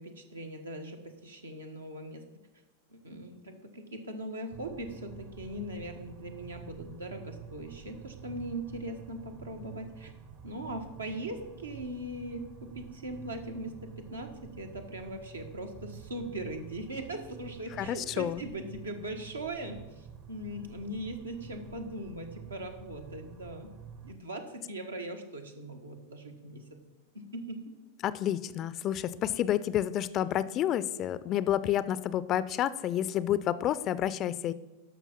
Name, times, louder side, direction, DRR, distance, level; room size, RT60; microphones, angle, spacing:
voice 1, 0.0-2.2 2.9-10.1 10.4-23.7 24.0-26.8 27.1-27.7, right 1 dB, 75° right, 4 dB, 1.3 m, -40 dB
sound 1, 4.5-24.1, right 7 dB, 35° right, 0.8 m, -49 dB
voice 2, 17.8-18.4 28.0-34.5, left 11 dB, 35° left, 16 dB, 0.4 m, -29 dB
12.5 x 5.8 x 5.9 m, 1.1 s
figure-of-eight pair, 90°, 0 cm